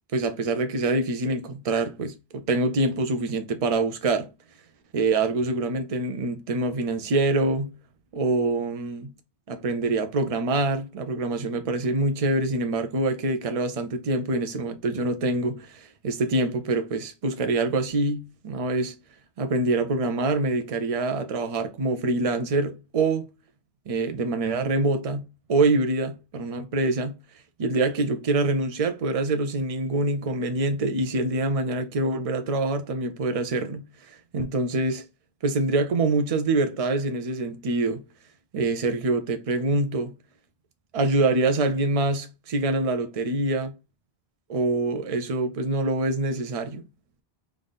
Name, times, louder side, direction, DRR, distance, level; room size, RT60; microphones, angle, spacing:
voice 1, 0.1-4.3 4.9-7.7 8.1-9.1 9.5-19.0 19.4-23.3 23.9-25.2 25.5-27.2 27.6-35.0 35.4-38.0 38.5-40.1 40.9-43.7 44.5-46.8, right 2 dB, 40° right, 0.6 m, -25 dB
3.5 x 2.5 x 3.9 m
omnidirectional pair, 1.1 m